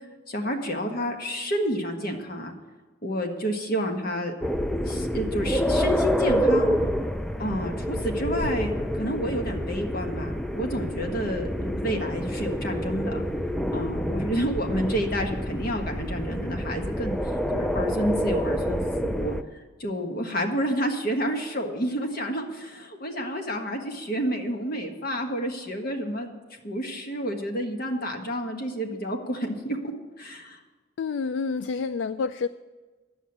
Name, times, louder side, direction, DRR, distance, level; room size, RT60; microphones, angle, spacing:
voice 1, 0.3-2.5 3.0-4.3 4.8-6.7 7.4-13.2 13.7-17.2 17.5-19.3 19.8-30.6, equal, 50° left, 4 dB, 1.5 m, -29 dB
sound 1, 4.4-19.4, equal, ahead, 0.4 m, -28 dB
voice 2, 31.0-32.5, left 5 dB, 70° left, 13 dB, 0.3 m, -28 dB
10.5 x 7.9 x 8.6 m, 1.3 s
head